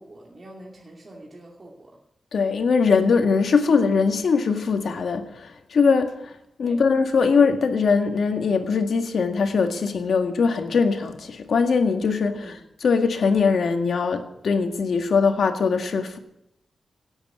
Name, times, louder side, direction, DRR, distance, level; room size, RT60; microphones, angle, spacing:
voice 1, 0.0-1.9 6.6-6.8 12.3-12.6, right 1 dB, 40° right, 2.5 m, -45 dB
voice 2, 2.3-6.3 6.6-12.5 12.8-16.2, left 5 dB, 70° left, 1.7 m, -21 dB
17.0 x 8.1 x 8.0 m
wide cardioid pair, 90°, 0 cm